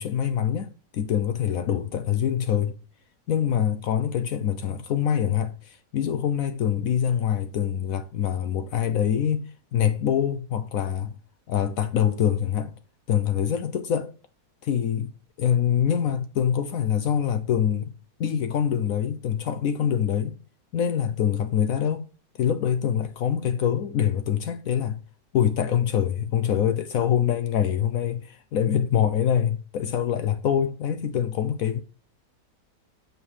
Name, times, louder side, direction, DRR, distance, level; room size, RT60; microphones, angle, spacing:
voice 1, 0.0-2.8 3.3-9.4 9.7-11.1 11.5-12.7 13.1-14.1 14.6-15.1 15.4-17.9 18.2-20.3 20.7-22.1 22.4-25.0 25.3-31.8, left 9 dB, 65° left, 0.9 m, -25 dB
7.2 x 5.3 x 4.7 m
omnidirectional pair, 1.9 m